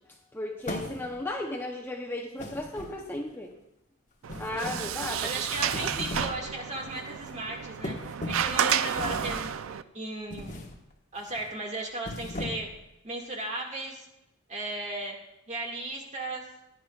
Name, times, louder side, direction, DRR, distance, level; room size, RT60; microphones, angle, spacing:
voice 1, 0.3-3.5 4.4-5.3 5.6-5.7, left 1 dB, 10° left, 1 dB, 0.7 m, -35 dB
sound 1, 0.6-1.3 2.4-3.3 4.3-5.0 5.6-6.4 6.7-7.0 7.8-8.6 9.0-9.5 10.3-10.8 11.1-11.4 11.9-12.8, left 1 dB, 35° left, 1.3 m, -38 dB
Sliding door, 4.2-9.8, right 8 dB, 70° right, 0.4 m, -31 dB
voice 2, 5.2-10.6 11.1-12.7 13.0-14.1 14.5-15.2 15.5-16.4, right 1 dB, 35° right, 0 dB, 2.0 m, -36 dB
16.0 x 10.0 x 2.4 m, 0.89 s
head